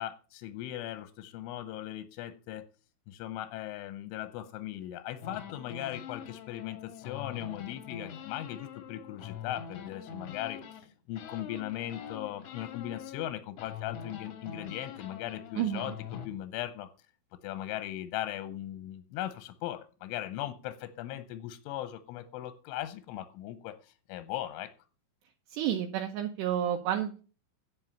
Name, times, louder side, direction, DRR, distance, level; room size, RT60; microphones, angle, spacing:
voice 1, 0.0-2.7 3.1-16.9 17.4-24.7, left 13 dB, 90° left, 12 dB, 3.2 m, -38 dB
sound 1, 5.2-10.9 11.2-13.3 13.6-16.3, left 8 dB, 70° left, 2.0 m, -44 dB
voice 2, 15.6-16.0 25.5-27.2, right 10 dB, 75° right, 4 dB, 2.7 m, -30 dB
11.0 x 5.6 x 8.6 m, 0.37 s
omnidirectional pair, 5.5 m